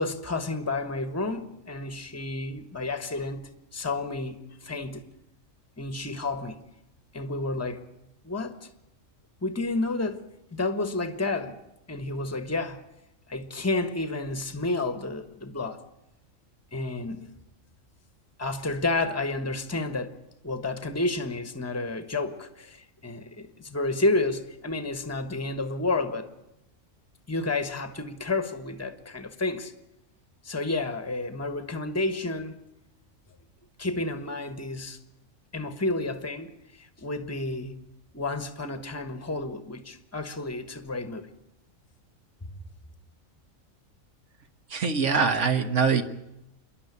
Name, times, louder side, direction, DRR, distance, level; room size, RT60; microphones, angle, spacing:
voice 1, 0.0-5.0 5.8-6.6 7.1-7.9 8.2-8.7 9.4-11.6 11.9-12.8 13.3-15.8 16.7-17.3 18.4-26.3 27.3-29.7 30.4-32.6 33.8-35.0 35.5-36.5 36.8-37.9 38.1-41.3, left 2 dB, 10° left, 1.3 m, -30 dB
voice 2, 44.7-46.0, right 5 dB, 65° right, 1.7 m, -23 dB
27.5 x 11.0 x 9.7 m
omnidirectional pair, 1.4 m